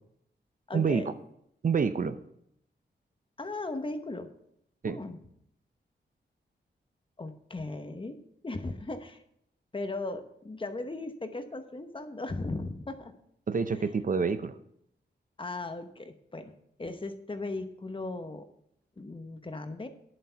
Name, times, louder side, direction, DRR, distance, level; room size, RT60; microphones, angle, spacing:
voice 1, 0.7-1.1 3.4-4.3 4.8-5.2 7.2-9.2 9.7-13.2 15.4-16.5 16.8-18.5 19.0-19.9, left 2 dB, 30° left, 8 dB, 1.0 m, -37 dB
voice 2, 1.6-2.2 4.8-5.0 13.5-14.6, right 5 dB, 45° right, 11 dB, 0.6 m, -27 dB
10.5 x 7.7 x 5.7 m, 0.73 s
wide cardioid pair, 125°, 19 cm